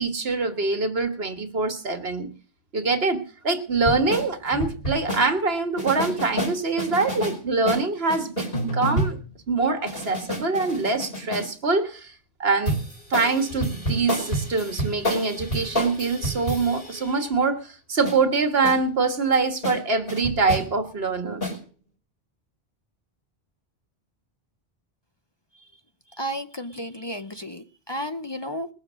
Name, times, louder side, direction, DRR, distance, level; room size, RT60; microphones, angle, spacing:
voice 1, 0.0-2.3 2.7-8.5 8.7-9.2 9.5-12.1 12.4-12.8 13.1-21.5, right 4 dB, 75° right, 7 dB, 1.9 m, -24 dB
sound 1, 3.7-5.3 5.8-7.4 7.7-9.3 9.8-11.5 12.7-17.2 18.0-18.2 18.6-18.8 19.3-19.4 19.6-19.8 20.1-20.7 21.4-21.6, equal, 65° left, 5.0 m, -29 dB
voice 2, 26.1-28.7, equal, 30° left, 9 dB, 0.7 m, -33 dB
20.5 x 7.3 x 6.3 m, 0.40 s
omnidirectional pair, 1.0 m